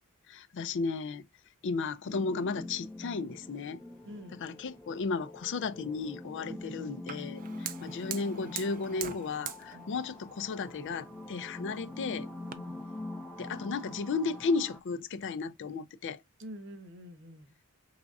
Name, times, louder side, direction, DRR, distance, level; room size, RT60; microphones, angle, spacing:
voice 1, 0.3-1.2 1.6-3.8 4.4-12.3 13.4-16.2, left 4 dB, 55° left, 0.4 m, -34 dB
sound 1, 2.1-14.8, left 2 dB, 5° left, 0.6 m, -45 dB
voice 2, 4.0-4.4 9.7-10.0 11.3-11.5 12.5-12.9 16.4-17.6, equal, 60° right, 1.0 m, -48 dB
Fire, 7.1-12.5, right 9 dB, 40° right, 0.5 m, -44 dB
5.0 x 3.5 x 2.3 m
head